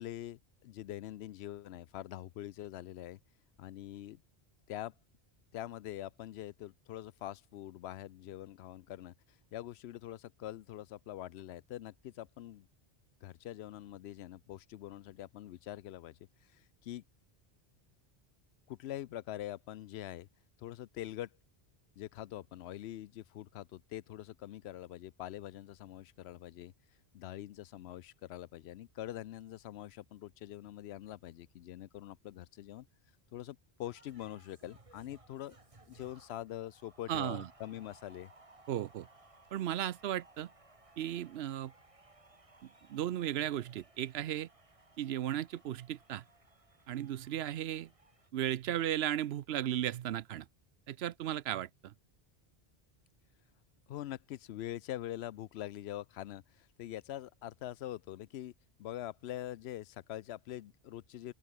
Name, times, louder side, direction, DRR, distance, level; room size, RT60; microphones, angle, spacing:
voice 1, 0.0-3.2 3.6-4.2 4.7-4.9 5.5-9.1 9.5-12.7 13.2-16.2 16.5-17.0 18.7-20.3 20.6-21.3 22.0-26.7 27.1-32.9 33.3-35.6 35.9-38.3 53.9-58.5 58.8-61.3, left 13 dB, 90° left, 0.8 m, -44 dB
sound 1, 33.8-48.3, right 2 dB, 35° right, 2.0 m, -62 dB
voice 2, 37.1-37.5 38.7-39.1 39.5-40.5 41.0-41.7 42.6-44.5 45.0-46.2 46.9-47.9 48.3-50.5 50.9-51.9, right 11 dB, 90° right, 0.9 m, -35 dB
open air
omnidirectional pair, 1.0 m